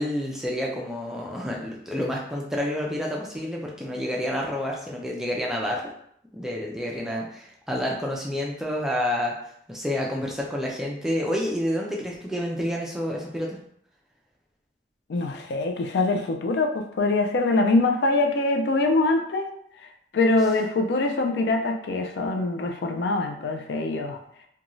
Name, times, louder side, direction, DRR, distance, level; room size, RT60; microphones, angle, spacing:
voice 1, 0.0-5.9 6.3-9.3 9.7-13.6, left 1 dB, 5° right, -2 dB, 0.3 m, -29 dB
voice 2, 15.1-19.5 20.1-24.2, left 2 dB, 75° left, 3 dB, 0.4 m, -23 dB
2.5 x 2.3 x 3.0 m, 0.69 s
head